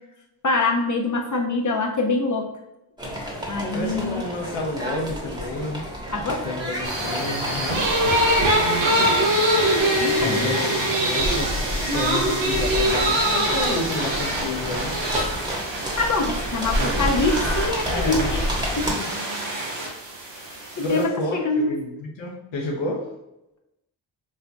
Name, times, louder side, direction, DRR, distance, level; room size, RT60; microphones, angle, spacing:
voice 1, 0.4-2.5 3.5-4.2 6.1-6.4 10.0-10.5 16.0-18.5 18.8-19.0 20.4-20.5 20.8-21.8, left 3 dB, 40° left, 2 dB, 0.8 m, -24 dB
sound 1, 3.0-18.9, left 1 dB, 10° right, 1.1 m, -31 dB
voice 2, 3.7-5.8 6.2-7.9 10.2-11.5 11.8-14.9 16.9-17.4 17.8-18.3 18.9-19.1 20.8-23.1, left 2 dB, 85° left, -2 dB, 0.7 m, -30 dB
sound 2, 6.8-21.0, right 1 dB, 80° right, 0.9 m, -24 dB
4.3 x 2.5 x 2.3 m, 0.88 s
cardioid pair, 45°, 44 cm